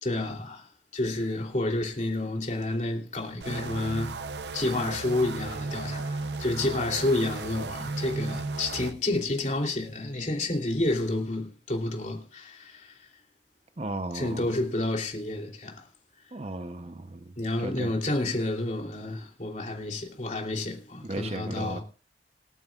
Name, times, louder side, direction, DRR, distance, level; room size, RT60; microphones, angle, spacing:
voice 1, 0.0-4.1 4.5-13.1 14.1-15.9 17.4-21.8, left 2 dB, 40° left, 3.2 m, -30 dB
sound 1, 3.4-8.9, right 3 dB, 70° right, 0.7 m, -35 dB
voice 2, 13.8-14.4 16.3-17.2 17.6-17.9 21.1-21.8, right 2 dB, 35° right, 0.8 m, -35 dB
27.0 x 9.5 x 2.4 m
head